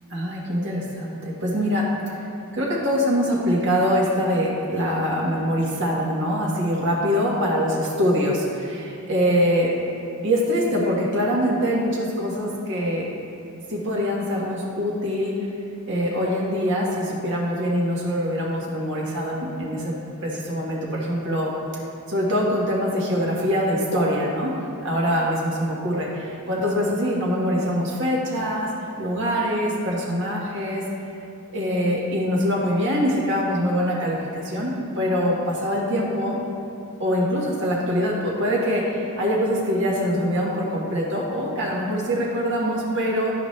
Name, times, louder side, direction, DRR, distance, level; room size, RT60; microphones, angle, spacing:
voice 1, 0.1-1.9 2.5-9.7 10.2-13.0 13.7-15.3 15.9-19.9 20.2-21.5 22.1-24.5 24.8-28.7 29.0-30.8 31.5-36.4 37.0-43.3, equal, 60° right, -4 dB, 1.6 m, -24 dB
12.5 x 5.0 x 3.3 m, 2.5 s
head